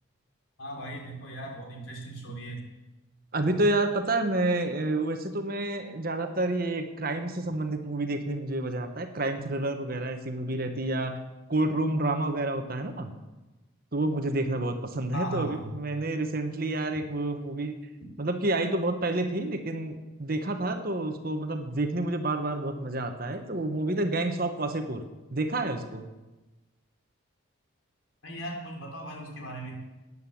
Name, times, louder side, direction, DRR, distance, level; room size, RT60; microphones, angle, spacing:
voice 1, 0.6-2.7 15.1-15.7 28.2-29.8, right 1 dB, 70° left, 0 dB, 3.6 m, -38 dB
voice 2, 3.3-11.2 11.5-13.1 13.9-17.7 18.2-25.0 25.3-26.0, right 2 dB, 45° right, 7 dB, 1.2 m, -29 dB
13.0 x 9.7 x 7.2 m, 1.1 s
head